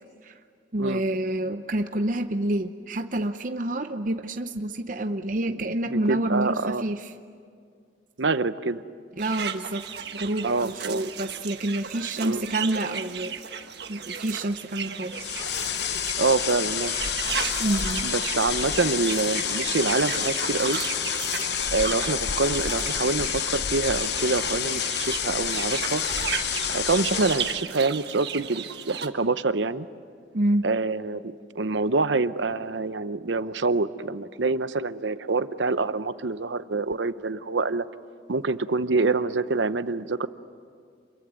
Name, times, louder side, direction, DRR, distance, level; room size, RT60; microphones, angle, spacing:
voice 1, 0.7-7.1 9.2-9.8 10.1-13.3 13.9-15.2 17.6-18.1 30.3-30.7, right 1 dB, 45° right, 7 dB, 0.7 m, -28 dB
voice 2, 5.9-6.8 8.2-8.8 10.4-11.1 12.2-12.4 16.2-16.9 18.0-20.8 21.7-26.0 26.7-29.9 30.6-37.8 38.3-40.3, right 3 dB, 80° right, 13 dB, 0.8 m, -26 dB
sound 1, 9.2-29.1, right 7 dB, 60° right, 1.4 m, -35 dB
sound 2, 15.1-27.7, left 9 dB, 65° left, 0.9 m, -29 dB
27.5 x 22.5 x 9.6 m, 2.2 s
head